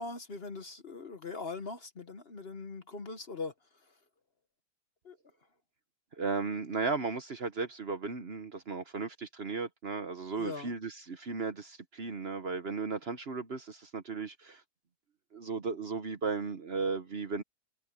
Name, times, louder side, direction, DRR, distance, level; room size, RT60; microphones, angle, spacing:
voice 1, 0.0-3.5 5.0-5.2 10.4-10.7, left 4 dB, 40° left, 1.2 m, -41 dB
voice 2, 6.1-14.6 15.3-17.4, right 4 dB, 45° right, 1.1 m, -35 dB
omnidirectional pair, 1.7 m